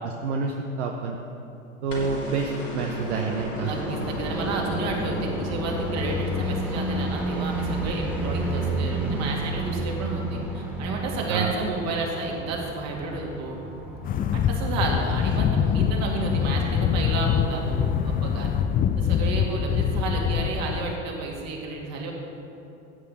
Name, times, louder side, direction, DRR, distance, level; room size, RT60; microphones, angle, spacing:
voice 1, 0.0-1.2 1.8-4.1 11.3-11.5, right 4 dB, 65° right, 2 dB, 1.0 m, -28 dB
sound 1, 1.9-8.1 9.6-9.7, equal, 85° left, 2.4 m, -33 dB
voice 2, 3.6-13.6 14.3-18.5 19.0-22.1, right 3 dB, 45° right, -1 dB, 2.5 m, -31 dB
sound 2, 3.7-16.5, right 1 dB, 5° right, 2.1 m, -32 dB
sound 3, 14.0-20.9, left 7 dB, 25° left, 0.5 m, -24 dB
15.5 x 8.6 x 4.2 m, 2.8 s
figure-of-eight pair, 80°, 37 cm